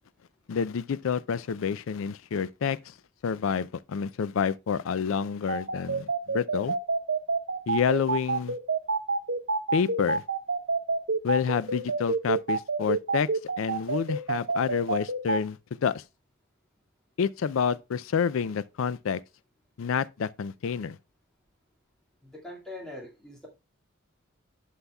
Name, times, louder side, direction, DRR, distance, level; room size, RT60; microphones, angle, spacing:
voice 1, 0.5-2.9 3.2-6.8 7.7-8.6 9.7-10.2 11.2-13.3 13.6-16.0 17.2-19.2 19.8-21.0, left 6 dB, 70° left, 0.4 m, -28 dB
sound 1, 5.5-15.4, right 4 dB, 60° right, 0.9 m, -27 dB
voice 2, 22.2-23.5, left 1 dB, ahead, 2.0 m, -42 dB
11.5 x 5.6 x 2.3 m
head